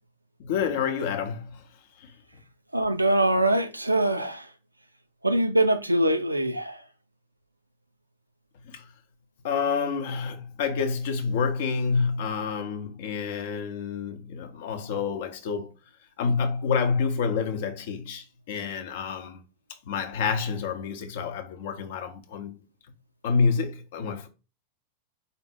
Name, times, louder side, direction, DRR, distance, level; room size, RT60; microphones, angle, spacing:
voice 1, 0.4-1.6 2.0-2.1 8.7-8.8 9.4-15.7 16.2-19.4 19.9-22.6 23.2-24.3, left 5 dB, 55° left, 0.6 m, -28 dB
voice 2, 2.7-4.5 5.2-6.8, right 1 dB, 85° right, 0.4 m, -23 dB
4.0 x 2.0 x 3.7 m
figure-of-eight pair, 90°, 0 cm